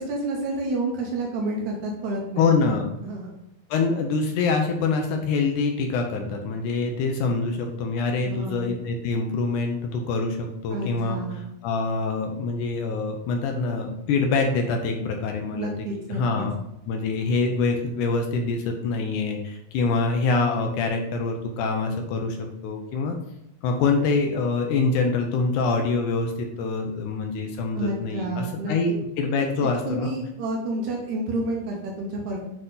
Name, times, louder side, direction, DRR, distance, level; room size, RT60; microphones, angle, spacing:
voice 1, 0.0-2.7 3.0-3.4 8.3-8.7 10.7-11.5 15.5-16.5 27.7-28.7 29.6-32.4, right 2 dB, 70° right, 0 dB, 1.9 m, -30 dB
voice 2, 2.4-2.8 3.7-11.2 11.6-15.7 16.1-16.5 16.9-22.4 22.6-23.2 23.6-30.1, left 4 dB, 75° left, 3 dB, 1.9 m, -25 dB
7.8 x 3.7 x 3.8 m, 0.80 s
omnidirectional pair, 4.3 m